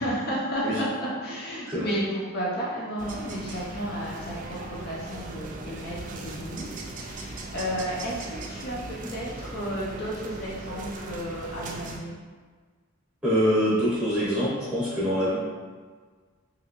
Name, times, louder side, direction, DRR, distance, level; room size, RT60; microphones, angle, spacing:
voice 1, 0.0-12.2, equal, 55° left, -6 dB, 0.6 m, -32 dB
sound 1, 3.0-12.0, right 2 dB, 40° right, 0.3 m, -38 dB
voice 2, 13.2-15.4, equal, 5° right, -8 dB, 0.9 m, -24 dB
3.0 x 2.7 x 2.9 m, 1.5 s
head